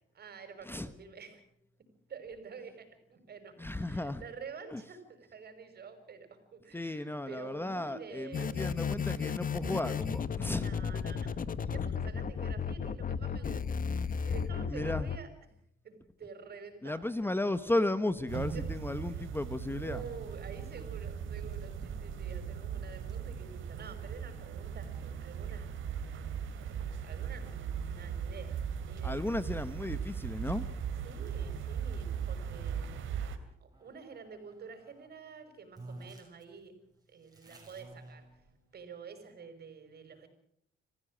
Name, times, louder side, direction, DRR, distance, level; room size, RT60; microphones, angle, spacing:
voice 1, 0.0-1.4 2.1-8.6 10.6-15.3 15.8-17.1 18.5-18.6 19.1-19.3 19.8-26.5 27.0-29.3 31.0-36.8 37.1-38.4 38.7-40.3, right 5 dB, 55° right, 8 dB, 5.6 m, -49 dB
voice 2, 0.6-0.9 3.6-4.2 4.7-4.8 6.7-10.7 14.7-15.1 16.8-20.1 29.0-30.7, left 2 dB, 10° left, 12 dB, 1.1 m, -34 dB
sound 1, 8.3-15.2, left 6 dB, 45° left, 1.3 m, -34 dB
sound 2, 18.3-33.4, right 7 dB, 80° right, 2.8 m, -38 dB
sound 3, 19.8-33.0 33.7-35.1 35.4-35.5 35.7-38.9, right 2 dB, 20° right, 7.4 m, -57 dB
26.5 x 15.5 x 7.5 m, 0.69 s
cardioid pair, 90°, 20 cm